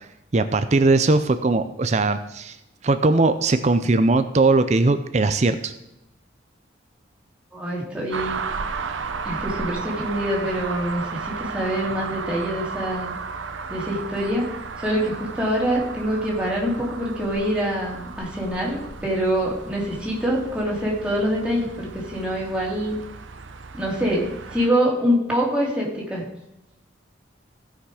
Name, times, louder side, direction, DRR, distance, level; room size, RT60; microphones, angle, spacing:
voice 1, 0.3-2.6 2.8-5.7, right 3 dB, 35° right, 11 dB, 0.5 m, -19 dB
voice 2, 7.5-8.4 9.2-13.1 13.7-23.0 23.7-26.3, equal, 5° right, -4 dB, 2.7 m, -25 dB
sound 1, 8.1-24.7, right 5 dB, 80° right, 0.7 m, -34 dB
16.0 x 5.9 x 4.9 m, 0.86 s
head